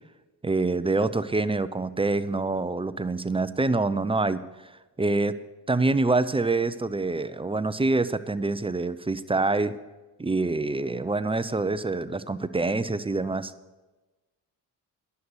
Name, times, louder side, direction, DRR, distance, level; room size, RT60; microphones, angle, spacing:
voice 1, 0.4-4.4 5.0-5.3 5.7-9.7 10.2-13.5, right 3 dB, 15° right, 14 dB, 0.6 m, -26 dB
11.0 x 6.9 x 8.0 m, 1.1 s
supercardioid pair, 60°, 42 cm